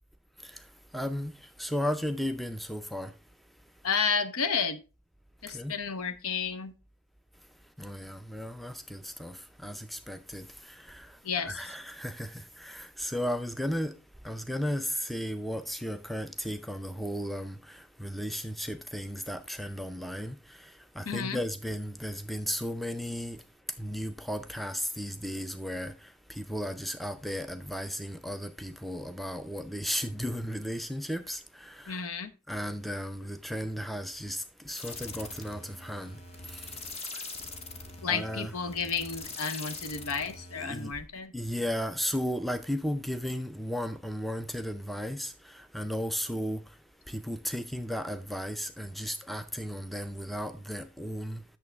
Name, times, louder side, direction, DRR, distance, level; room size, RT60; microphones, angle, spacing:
voice 1, 0.9-1.3 1.6-3.1 5.5-5.7 7.8-14.0 14.2-20.7 21.0-23.4 23.8-32.0 32.5-36.2 36.5-36.7 38.1-38.5 40.6-40.9 41.3-46.6 47.1-51.4, equal, ahead, 0.4 m, -35 dB
voice 2, 3.8-4.8 5.4-6.7 11.2-11.6 21.1-21.4 31.9-32.3 38.0-41.3, left 6 dB, 80° left, 0.8 m, -31 dB
sound 1, 34.7-41.0, left 3 dB, 30° left, 0.8 m, -43 dB
8.5 x 6.7 x 3.3 m
head